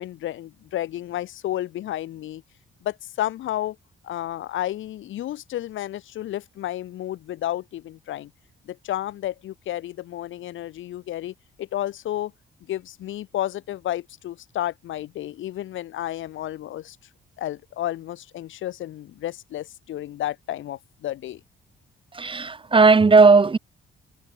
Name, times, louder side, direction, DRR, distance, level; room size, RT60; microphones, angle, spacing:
voice 1, 0.0-2.4 2.8-3.8 4.0-8.3 8.7-12.3 12.7-17.0 17.4-21.4, left 13 dB, 75° left, 2.2 m, -31 dB
voice 2, 22.1-23.6, right 4 dB, 25° right, 1.5 m, -15 dB
cardioid pair, 90°, 20 cm